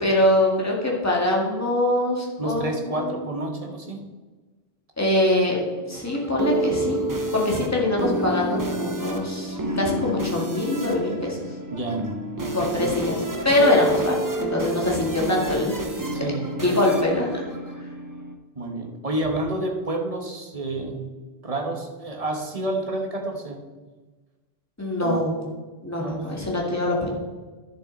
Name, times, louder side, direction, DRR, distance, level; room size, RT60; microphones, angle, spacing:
voice 1, 0.0-3.2 5.0-5.6 5.9-7.0 7.3-11.4 12.5-15.7 16.6-17.4 24.8-25.4 25.8-27.1, left 1 dB, 15° left, -3 dB, 1.9 m, -23 dB
voice 2, 2.4-4.1 11.7-12.8 16.1-16.6 18.5-21.0 21.4-23.7 25.0-25.2 26.0-26.3, right 2 dB, 35° right, 2 dB, 1.3 m, -29 dB
sound 1, 5.7-18.3, right 2 dB, 20° right, 0.8 m, -29 dB
10.5 x 7.3 x 3.9 m, 1.3 s
omnidirectional pair, 1.0 m